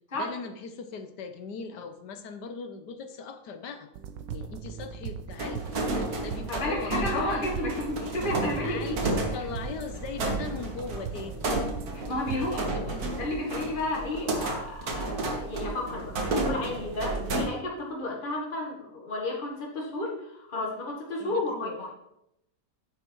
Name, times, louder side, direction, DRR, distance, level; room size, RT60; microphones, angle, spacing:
voice 1, 0.1-3.9 4.3-7.7 8.6-11.5 12.2-13.1 21.2-21.8, left 5 dB, 70° left, 8 dB, 1.5 m, -39 dB
sound 1, 3.9-12.6, right 7 dB, 80° right, 1.4 m, -39 dB
sound 2, 5.4-17.4, right 2 dB, 60° right, 1.9 m, -32 dB
voice 2, 6.5-9.0 11.9-12.6 13.2-21.9, left 2 dB, 30° left, -2 dB, 2.0 m, -32 dB
9.1 x 7.1 x 4.6 m, 0.80 s
omnidirectional pair, 1.9 m